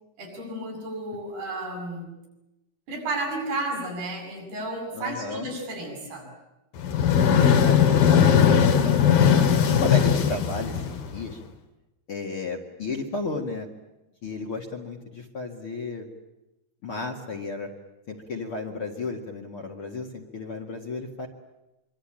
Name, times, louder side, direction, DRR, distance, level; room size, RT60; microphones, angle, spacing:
voice 1, 0.2-2.1 2.9-6.3, right 2 dB, 80° right, 1 dB, 9.7 m, -32 dB
voice 2, 4.9-5.5 7.4-11.4 12.1-13.7 14.2-16.1 16.8-17.7 18.1-21.3, left 3 dB, 40° left, 1 dB, 2.3 m, -33 dB
sound 1, 6.8-11.3, left 8 dB, 70° left, 3.6 m, -19 dB
25.5 x 24.0 x 8.9 m, 0.98 s
omnidirectional pair, 4.5 m